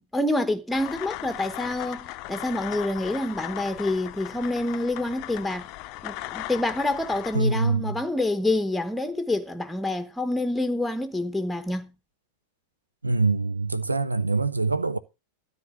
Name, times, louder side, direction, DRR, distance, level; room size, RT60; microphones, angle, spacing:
voice 1, 0.0-5.7 6.0-11.9, left 2 dB, 5° left, 1.0 m, -27 dB
sound 1, 0.7-7.4, left 17 dB, 40° left, 0.6 m, -38 dB
voice 2, 7.3-8.0 13.0-15.0, right 3 dB, 80° right, 0.7 m, -24 dB
12.5 x 4.3 x 7.7 m
figure-of-eight pair, 90°, 0 cm